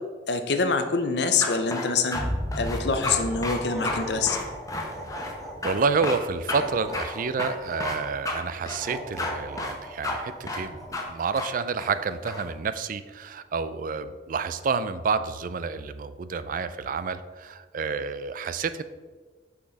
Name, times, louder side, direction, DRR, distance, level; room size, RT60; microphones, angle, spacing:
voice 1, 0.3-2.2 2.6-4.4, left 4 dB, 70° left, 8 dB, 0.7 m, -25 dB
sound 1, 1.4-2.2 2.5-3.2 3.4-3.6 3.8-4.0 4.3-5.3 5.6-5.7 6.0-6.2 6.5-6.6 6.9-7.0 7.4-8.0 8.2-8.4 8.7-9.3 9.6-9.7 10.0-10.1 10.5-10.6 10.9-11.0 11.4-11.5 11.8-12.4, left 2 dB, 20° left, 0.9 m, -31 dB
sound 2, 2.1-9.5, equal, 70° right, 2.2 m, -37 dB
sound 3, 3.2-6.0 6.5-8.1 8.7-11.0, right 1 dB, ahead, 1.4 m, -39 dB
voice 2, 5.4-18.8, right 5 dB, 50° right, 12 dB, 0.4 m, -29 dB
6.0 x 6.0 x 4.0 m, 1.5 s
head